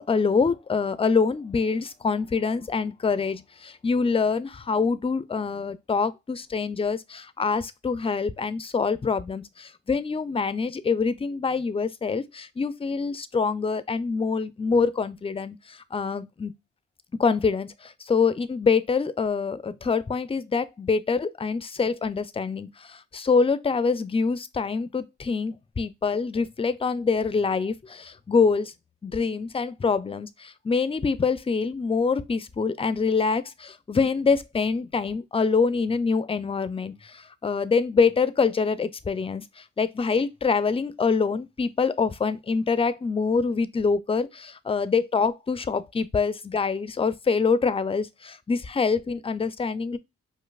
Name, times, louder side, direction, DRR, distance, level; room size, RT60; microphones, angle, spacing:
voice 1, 0.0-16.5 17.2-28.7 29.0-50.0, left 5 dB, 20° left, 0.4 m, -25 dB
5.1 x 2.0 x 2.3 m
cardioid pair, 50°, 31 cm